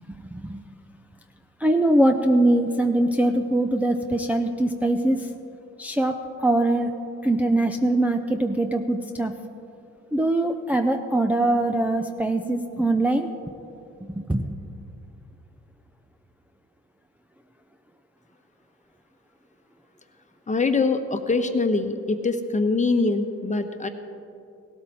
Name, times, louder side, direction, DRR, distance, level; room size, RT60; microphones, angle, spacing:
voice 1, 1.6-5.3 5.8-6.9 7.2-9.3 10.1-13.3 14.1-14.5, right 1 dB, 5° right, 3 dB, 0.6 m, -22 dB
voice 2, 20.5-23.9, left 3 dB, 25° left, 7 dB, 1.1 m, -23 dB
17.5 x 13.0 x 4.3 m, 2.7 s
cardioid pair, 90°, 30 cm